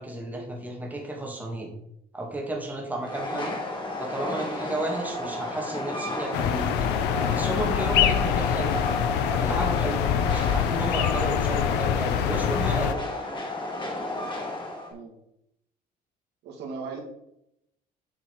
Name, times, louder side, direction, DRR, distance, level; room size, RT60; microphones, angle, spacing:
voice 1, 0.0-1.7 2.1-3.6 4.0-8.8 9.3-13.0, right 1 dB, 10° right, 0 dB, 1.9 m, -33 dB
Train, 3.0-14.9, left 1 dB, 30° left, 2.3 m, -32 dB
sound 1, 6.3-12.9, left 9 dB, 90° left, 0.6 m, -25 dB
voice 2, 16.4-17.0, right 5 dB, 80° right, 2 dB, 1.9 m, -39 dB
7.9 x 4.4 x 4.5 m, 0.80 s
cardioid pair, 110°, 17 cm